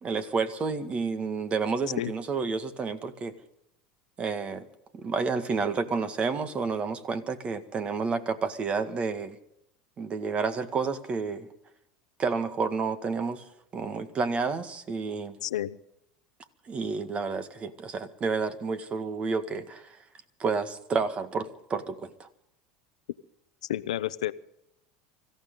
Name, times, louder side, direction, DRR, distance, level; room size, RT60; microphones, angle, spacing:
voice 1, 0.0-3.3 4.2-4.7 4.9-9.4 10.0-11.5 12.2-15.4 16.7-20.0 20.4-22.3, right 4 dB, 35° right, 10 dB, 1.9 m, -30 dB
voice 2, 15.4-15.8 23.7-24.3, left 13 dB, 90° left, 15 dB, 0.7 m, -30 dB
25.0 x 15.0 x 3.9 m, 0.79 s
supercardioid pair, 100°, 4 cm